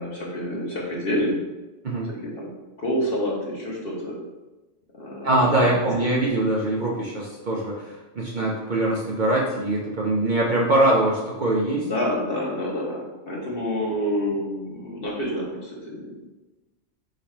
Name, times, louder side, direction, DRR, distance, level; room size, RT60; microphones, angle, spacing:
voice 1, 0.0-1.4 2.1-2.5 2.8-4.2 4.9-5.7 6.0-6.1 11.7-16.1, equal, 50° left, -3 dB, 1.2 m, -28 dB
voice 2, 5.2-11.9, right 1 dB, 50° right, -3 dB, 0.6 m, -23 dB
4.8 x 2.3 x 4.3 m, 1.1 s
omnidirectional pair, 1.2 m